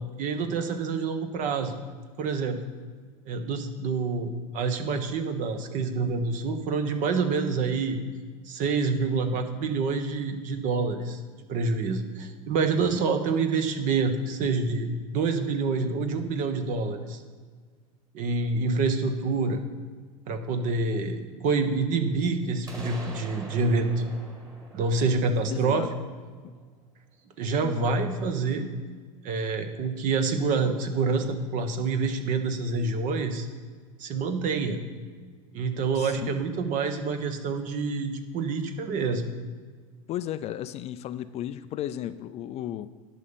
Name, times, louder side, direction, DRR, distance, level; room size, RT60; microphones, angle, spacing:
voice 1, 0.2-1.7 2.2-2.6 3.3-8.0 8.5-11.2 11.5-14.9 15.1-17.2 18.1-19.6 20.3-23.9 24.7-25.9 27.4-28.7 29.2-33.5 34.0-34.8 35.5-39.2, right 4 dB, 45° right, 7 dB, 1.3 m, -27 dB
sound 1, 22.7-26.5, right 2 dB, 20° right, 2.3 m, -45 dB
voice 2, 25.5-25.9 26.4-26.5 27.6-27.9 35.9-36.4 40.1-42.9, left 12 dB, 35° left, 13 dB, 0.4 m, -35 dB
11.0 x 5.5 x 7.0 m, 1.6 s
hypercardioid pair, 100°, 18 cm